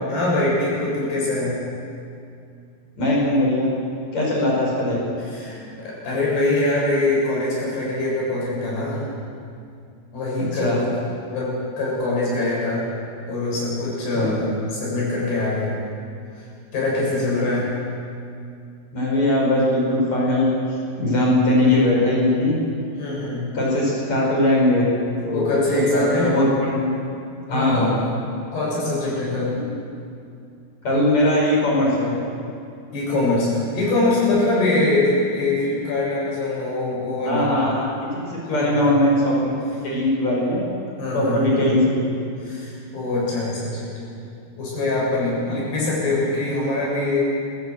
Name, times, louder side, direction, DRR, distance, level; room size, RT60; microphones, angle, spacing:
voice 1, 0.1-1.6 5.2-9.0 10.1-10.9 11.3-12.8 13.3-15.7 16.4-16.5 16.7-17.7 23.0-23.5 25.0-26.3 27.5-27.9 28.5-29.7 32.9-37.7 38.5-39.0 41.0-41.6 42.4-43.9 44.6-47.2, left 2 dB, 90° left, -6 dB, 9.4 m, -23 dB
voice 2, 3.0-3.7 4.1-5.0 10.4-10.8 14.1-14.3 18.9-20.5 21.0-22.6 23.5-24.9 25.2-26.9 27.5-27.9 30.8-32.1 37.3-39.6 39.8-40.6 41.1-42.0 45.5-45.6, left 1 dB, 45° left, -4 dB, 6.3 m, -20 dB
23.5 x 14.5 x 7.9 m, 2.5 s
omnidirectional pair, 4.5 m